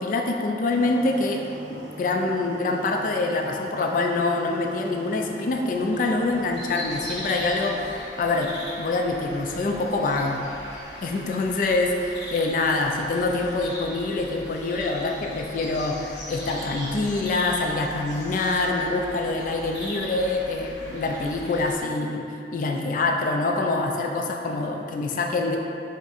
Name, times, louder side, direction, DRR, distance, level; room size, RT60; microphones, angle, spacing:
voice 1, 0.0-1.4 1.7-8.5 8.8-10.4 11.0-22.3 22.5-25.6, left 3 dB, 50° left, 2 dB, 0.3 m, -25 dB
sound 1, 0.6-7.9, right 1 dB, 85° right, 0.6 m, -41 dB
sound 2, 5.8-21.7, equal, 70° left, 1.0 m, -39 dB
3.5 x 2.5 x 4.0 m, 2.7 s
head